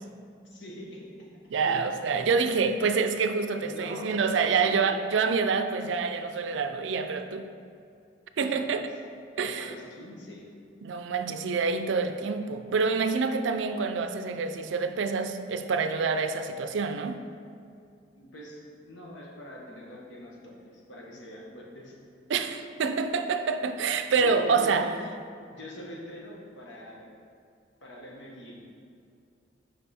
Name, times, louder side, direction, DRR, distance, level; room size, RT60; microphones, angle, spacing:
voice 1, 0.4-1.3 1.5-1.8 3.6-4.1 4.4-5.0 8.5-8.8 9.3-10.5 18.1-21.9 24.2-24.9 25.5-27.1 27.8-28.7, equal, 75° left, -3 dB, 1.2 m, -44 dB
voice 2, 1.5-7.4 8.4-8.8 9.4-9.7 10.8-17.2 22.3-24.9, right 5 dB, 75° right, 9 dB, 0.4 m, -27 dB
5.4 x 5.2 x 4.2 m, 2.4 s
head